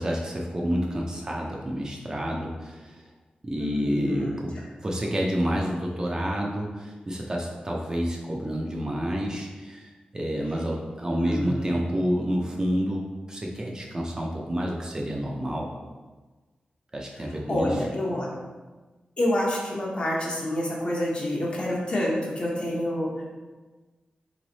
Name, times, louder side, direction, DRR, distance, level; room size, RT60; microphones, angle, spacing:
voice 1, 0.0-3.0 3.4-4.5 4.8-15.7 16.9-17.7, equal, 25° right, -1 dB, 0.5 m, -29 dB
voice 2, 3.6-4.4 11.2-11.7 17.5-18.3 19.2-23.2, left 1 dB, 40° left, -4 dB, 0.9 m, -27 dB
3.5 x 3.1 x 4.0 m, 1.3 s
wide cardioid pair, 150°, 3 cm